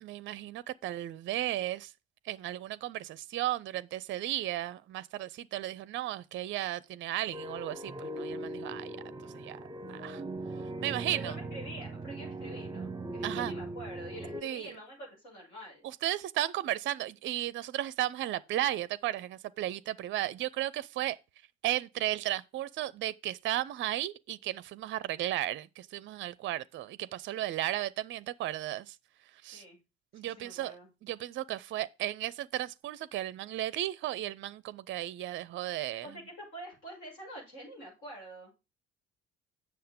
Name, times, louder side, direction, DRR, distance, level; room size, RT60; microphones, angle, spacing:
voice 1, 0.0-1.9 2.2-9.0 9.3-9.6 9.9-10.2 10.8-11.3 13.2-13.5 14.4-14.7 15.8-21.2 21.6-29.0 29.4-29.6 30.1-30.7 31.0-36.1, right 14 dB, 35° right, 0.5 m, -34 dB
sound 1, 7.3-14.4, right 2 dB, 10° right, 0.8 m, -40 dB
voice 2, 11.1-15.9 29.5-29.8 30.1-30.9 35.8-38.5, right 1 dB, 65° left, 6.8 m, -46 dB
7.8 x 6.6 x 5.0 m
figure-of-eight pair, 50°, 34 cm